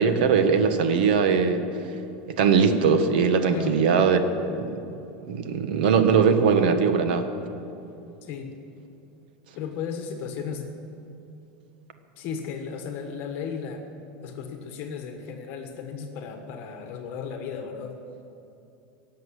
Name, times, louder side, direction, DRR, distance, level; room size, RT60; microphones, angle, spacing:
voice 1, 0.0-1.6 2.4-4.8 5.3-7.3, right 5 dB, 75° right, 8 dB, 1.4 m, -21 dB
voice 2, 8.2-8.6 9.5-10.7 12.2-13.9 14.2-18.0, left 6 dB, 45° left, 5 dB, 1.4 m, -35 dB
17.0 x 7.4 x 9.8 m, 2.8 s
supercardioid pair, 160°, 5 cm